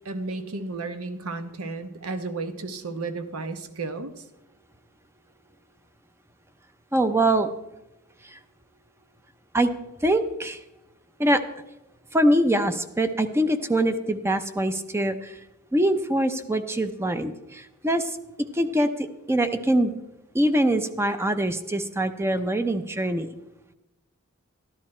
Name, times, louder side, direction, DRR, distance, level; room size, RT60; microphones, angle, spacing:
voice 1, 0.0-4.2, right 3 dB, 80° right, 9 dB, 1.0 m, -33 dB
voice 2, 6.9-7.5 8.2-8.4 9.5-9.7 10.0-10.6 11.2-11.4 12.1-15.4 15.7-18.2 18.5-19.9 20.3-23.3, right 1 dB, 10° right, 9 dB, 0.5 m, -23 dB
13.0 x 11.0 x 4.3 m, 0.94 s
head